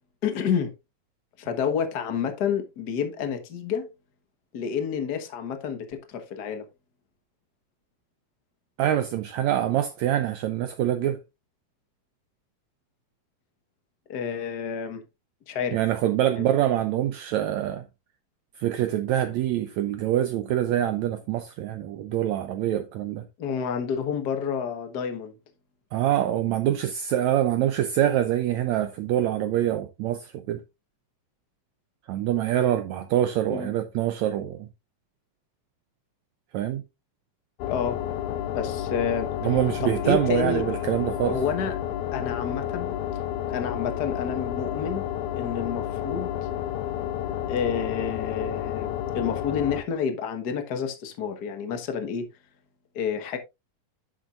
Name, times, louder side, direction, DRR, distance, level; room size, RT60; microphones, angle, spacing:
voice 1, 0.2-0.7 1.4-3.9 4.5-6.6 14.1-15.0 15.5-15.8 16.3-16.4 23.4-25.3 33.5-33.7 37.7-38.0 38.5-39.3 39.8-40.6 41.2-41.7 42.1-43.0 43.5-45.0 45.4-46.3 47.5-52.3 52.9-53.4, left 7 dB, 55° left, 1.1 m, -29 dB
voice 2, 8.8-11.2 15.7-17.9 18.6-23.2 25.9-30.6 32.1-34.7 36.5-36.8 39.4-41.4, right 12 dB, 75° right, 1.7 m, -25 dB
sound 1, 37.6-49.8, left 11 dB, 75° left, 2.0 m, -31 dB
10.0 x 7.4 x 2.5 m
omnidirectional pair, 3.7 m